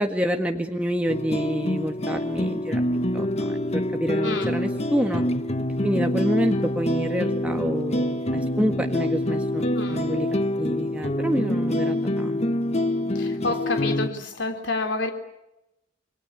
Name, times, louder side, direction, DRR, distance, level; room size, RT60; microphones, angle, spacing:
voice 1, 0.0-5.2 5.8-10.3 10.6-12.4, equal, 5° right, 3 dB, 1.7 m, -28 dB
sound 1, 1.1-14.1, left 1 dB, 35° left, 1.3 m, -26 dB
voice 2, 9.7-10.1 13.2-15.1, left 2 dB, 75° left, 5 dB, 3.6 m, -28 dB
28.5 x 22.0 x 8.2 m, 0.93 s
head